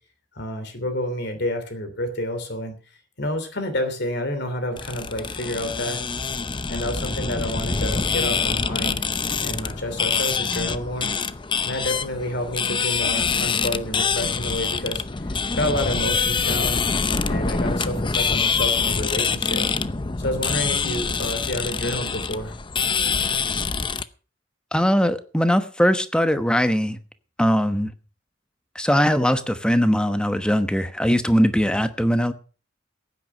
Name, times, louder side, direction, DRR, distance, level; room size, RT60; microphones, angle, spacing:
voice 1, 0.3-2.7 3.2-6.0 6.7-9.0 9.4-11.1 11.6-16.8 17.3-19.7 20.2-22.5, left 1 dB, 60° left, 8 dB, 3.0 m, -29 dB
sound 1, 4.8-24.0, left 5 dB, 25° left, 0.6 m, -25 dB
voice 2, 24.7-27.0 27.4-27.9 28.7-32.3, equal, 5° left, 10 dB, 1.0 m, -20 dB
15.5 x 9.4 x 5.6 m, 0.38 s
head